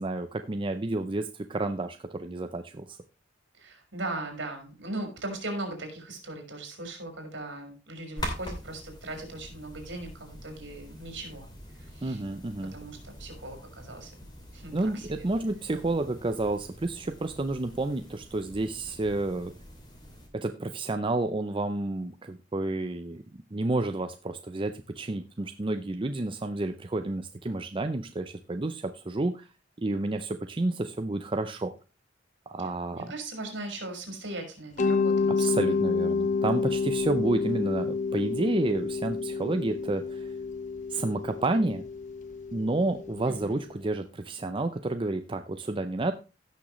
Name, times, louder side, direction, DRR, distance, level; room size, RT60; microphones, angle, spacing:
voice 1, 0.0-3.0 12.0-12.8 14.7-19.5 20.3-23.2 23.5-29.5 29.8-31.7 32.5-33.1 35.3-40.3 40.9-41.8 42.5-46.1, right 2 dB, 25° right, 8 dB, 0.5 m, -30 dB
voice 2, 3.6-11.5 11.9-12.2 12.7-14.1 14.5-15.3 32.9-35.8 43.4-43.6, right 2 dB, 65° right, 4 dB, 4.2 m, -39 dB
sound 1, 8.2-20.3, equal, 20° left, 2.8 m, -44 dB
Mallet percussion, 34.8-43.5, left 4 dB, 40° left, 0.5 m, -29 dB
16.5 x 6.2 x 3.1 m, 0.30 s
head